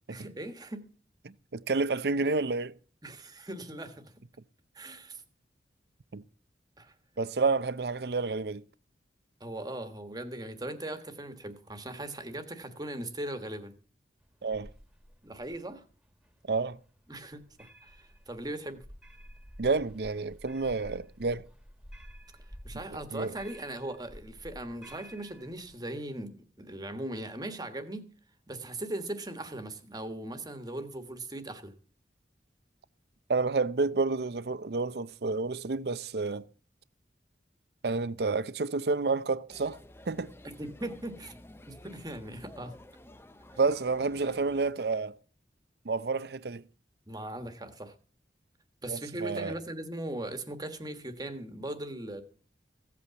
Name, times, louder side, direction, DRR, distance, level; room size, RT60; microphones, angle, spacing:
voice 1, 0.1-0.9 3.0-4.1 4.7-5.2 6.8-6.9 9.4-13.7 15.2-15.8 17.1-18.8 22.6-28.1 28.5-31.7 40.4-41.3 41.7-42.8 47.1-47.9 48.8-52.2, right 1 dB, 20° right, 1.4 m, -39 dB
voice 2, 1.2-2.7 6.1-6.2 7.2-8.6 14.4-14.7 16.5-16.8 19.6-21.5 22.9-23.3 33.3-36.4 37.8-39.8 40.1-40.3 43.6-45.2 45.8-46.6 48.9-49.5, right 4 dB, 65° right, 0.6 m, -29 dB
sound 1, 14.2-25.8, equal, 5° right, 1.7 m, -51 dB
sound 2, 39.5-44.7, left 1 dB, 15° left, 0.6 m, -52 dB
16.0 x 8.4 x 7.0 m
head